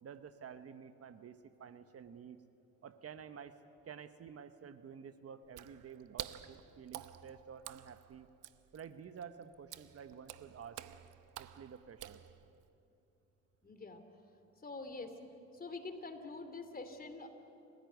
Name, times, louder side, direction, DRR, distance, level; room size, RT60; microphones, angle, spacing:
voice 1, 0.0-2.4 2.8-3.5 3.9-8.3 8.7-10.8 11.4-12.2, right 7 dB, 50° right, 10 dB, 1.1 m, -51 dB
Water / Splash splatter, 5.4-12.7, right 12 dB, 85° right, 0.9 m, -50 dB
voice 2, 13.6-14.0 14.6-15.1 15.5-17.3, left 3 dB, 30° left, 7 dB, 2.8 m, -45 dB
29.0 x 16.0 x 9.4 m, 2.8 s
cardioid pair, 90°, 30 cm